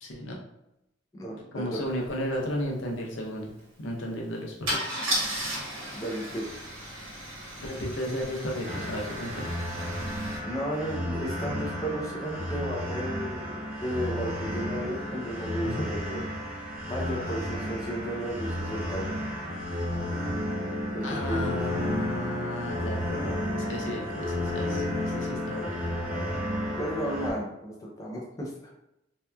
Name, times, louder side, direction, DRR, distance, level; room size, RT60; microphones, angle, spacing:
voice 1, 0.0-0.4 1.5-5.0 7.6-9.5 15.6-15.9 21.0-25.7, equal, 80° left, -2 dB, 0.6 m, -34 dB
voice 2, 1.1-2.0 5.9-6.5 10.4-13.5 13.8-16.2 16.8-19.2 20.9-21.8 26.8-28.7, equal, 20° left, -3 dB, 0.4 m, -34 dB
Car / Engine starting / Idling, 2.0-2.1 2.4-2.7 4.7-10.4, right 1 dB, 85° right, 1.1 m, -35 dB
sound 1, 8.6-27.3, left 1 dB, 45° right, 0.8 m, -32 dB
2.7 x 2.2 x 2.2 m, 0.85 s
head